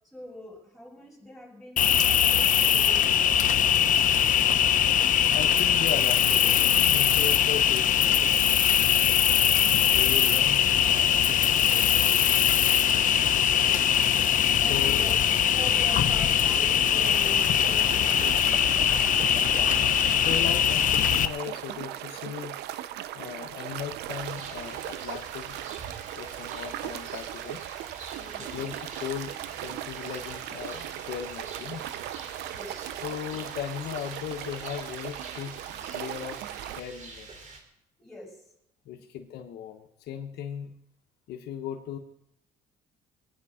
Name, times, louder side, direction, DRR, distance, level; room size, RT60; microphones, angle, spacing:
voice 1, 0.1-3.8 14.6-18.5 28.1-28.6 32.5-32.8 38.0-38.4 38.9-39.1, equal, ahead, -4 dB, 6.4 m, -44 dB
Cricket, 1.8-21.3, left 9 dB, 50° left, 0.9 m, -22 dB
voice 2, 5.3-8.4 9.7-12.4 14.7-15.1 19.3-19.7 20.2-22.5 23.1-25.6 26.1-27.6 28.4-31.8 33.0-35.6 35.9-36.4 36.7-37.3 38.8-40.7 41.3-42.0, left 9 dB, 75° left, 4 dB, 1.3 m, -37 dB
sound 1, 17.0-36.8, right 13 dB, 85° right, 0.7 m, -38 dB
Rain, 24.1-37.6, right 3 dB, 45° right, 3.7 m, -46 dB
22.5 x 9.6 x 5.0 m, 0.79 s
cardioid pair, 110°, 17 cm